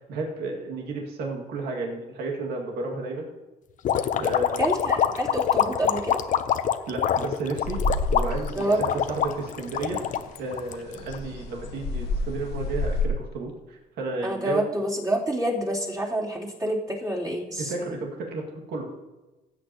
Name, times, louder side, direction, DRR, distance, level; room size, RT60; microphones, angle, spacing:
voice 1, 0.1-3.3 4.2-4.7 6.9-7.8 8.1-10.0 10.4-14.7 17.6-18.9, right 3 dB, 80° right, 0 dB, 2.1 m, -32 dB
sound 1, 3.8-11.2, left 9 dB, 50° left, 0.7 m, -25 dB
voice 2, 4.6-6.2 8.5-8.8 14.2-18.0, right 1 dB, 25° right, -5 dB, 3.3 m, -27 dB
sound 2, 7.6-13.1, left 2 dB, 80° left, 1.5 m, -31 dB
16.5 x 8.2 x 2.9 m, 1.1 s
cardioid pair, 110°, 17 cm